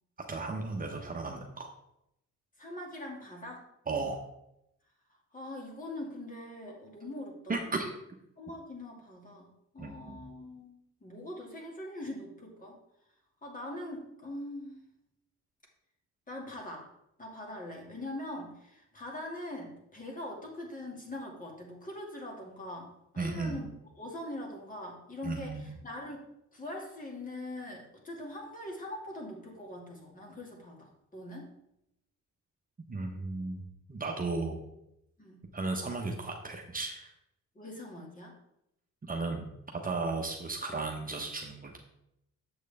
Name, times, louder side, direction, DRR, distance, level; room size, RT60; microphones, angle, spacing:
voice 1, 0.3-1.7 3.9-4.2 7.5-7.9 9.8-10.2 23.2-23.6 25.2-25.8 32.8-33.6 33.9-34.6 35.5-37.1 39.1-39.5 39.7-41.8, right 3 dB, 30° right, 1 dB, 1.1 m, -35 dB
voice 2, 2.6-3.7 5.3-7.6 8.4-12.8 13.4-14.8 16.3-16.9 17.2-23.7 24.0-31.5 35.2-35.4 37.5-38.4, left 1 dB, 25° left, -1 dB, 2.5 m, -42 dB
7.8 x 6.4 x 3.6 m, 0.81 s
cardioid pair, 90°, 30 cm